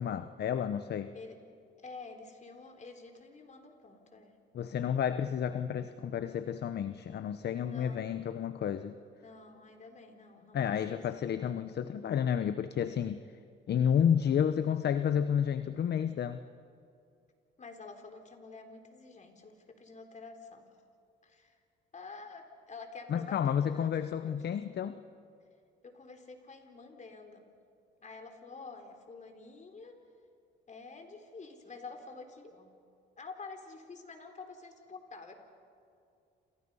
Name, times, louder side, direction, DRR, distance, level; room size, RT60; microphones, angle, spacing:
voice 1, 0.0-1.1 4.5-8.9 10.5-13.2 13.7-16.4 23.1-25.0, left 8 dB, 55° left, 11 dB, 0.9 m, -31 dB
voice 2, 1.8-4.4 7.6-8.0 9.2-11.0 17.6-20.6 21.2-21.6 21.9-24.3 25.8-27.4 28.0-30.0 30.7-32.7 33.2-35.4, left 4 dB, 35° left, 5 dB, 3.8 m, -49 dB
29.5 x 27.5 x 5.6 m, 2.5 s
cardioid pair, 90°, 20 cm